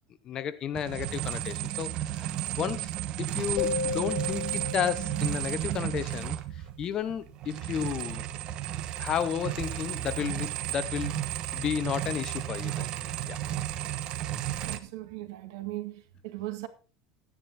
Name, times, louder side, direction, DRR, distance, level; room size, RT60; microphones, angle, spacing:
voice 1, 0.2-2.3 2.6-2.9 3.2-6.4 6.8-8.2 9.0-11.2 11.5-12.9 13.3-13.4, left 9 dB, 35° left, 1.0 m, -32 dB
sound 1, 0.7-6.8 7.1-14.8, right 13 dB, 45° right, 1.2 m, -33 dB
sound 2, 3.6-5.8, left 5 dB, 80° left, 1.7 m, -34 dB
voice 2, 14.6-16.7, right 16 dB, 80° right, 2.0 m, -38 dB
12.0 x 10.0 x 4.3 m
supercardioid pair, 145°, 2 cm